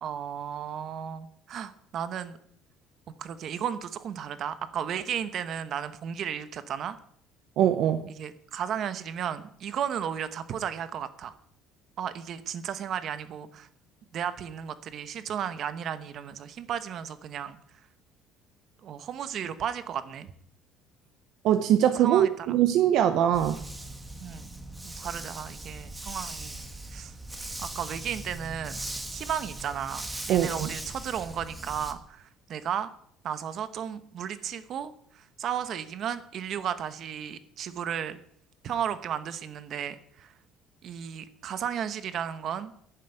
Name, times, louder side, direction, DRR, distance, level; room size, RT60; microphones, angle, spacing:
voice 1, 0.0-2.4 3.2-7.0 8.2-11.4 12.0-13.7 14.1-17.6 18.8-20.3 22.0-22.6 24.2-24.5 24.8-26.6 26.9-27.1 27.6-28.8 29.1-32.9 33.2-38.2 38.6-40.3 40.8-42.7, right 8 dB, 45° right, 1.0 m, -34 dB
voice 2, 7.6-8.1 21.4-23.6 30.3-30.7, right 10 dB, 60° right, 0.8 m, -22 dB
Dog, 23.3-31.9, right 2 dB, 10° right, 1.3 m, -39 dB
11.5 x 7.4 x 8.9 m
cardioid pair, 145°, 0 cm